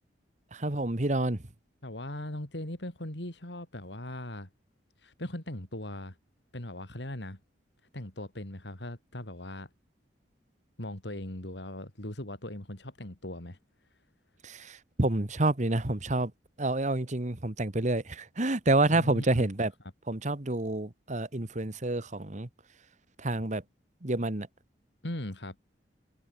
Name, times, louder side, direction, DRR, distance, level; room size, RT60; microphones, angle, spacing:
voice 1, 0.5-1.4 14.4-16.3 16.6-19.7 20.1-22.5 23.2-23.6 24.0-24.5, right 2 dB, 40° right, 1.6 m, -28 dB
voice 2, 1.8-4.5 5.0-6.2 6.5-7.4 7.9-9.7 10.8-13.6 18.9-19.5 25.0-25.6, left 1 dB, 70° left, 4.3 m, -39 dB
head